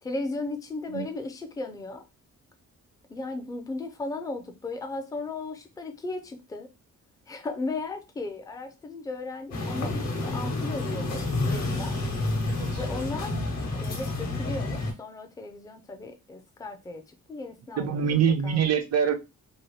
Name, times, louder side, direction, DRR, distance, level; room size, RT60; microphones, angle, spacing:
voice 1, 0.0-2.0 3.1-6.7 7.3-12.0 12.8-13.4 13.7-18.6, left 3 dB, 10° left, 0.4 m, -36 dB
sound 1, 9.5-14.9, left 2 dB, 60° left, 1.1 m, -29 dB
voice 2, 12.5-12.8 13.3-13.4 17.8-19.1, right 7 dB, 55° right, 0.5 m, -25 dB
2.8 x 2.6 x 3.1 m
wide cardioid pair, 155°, 31 cm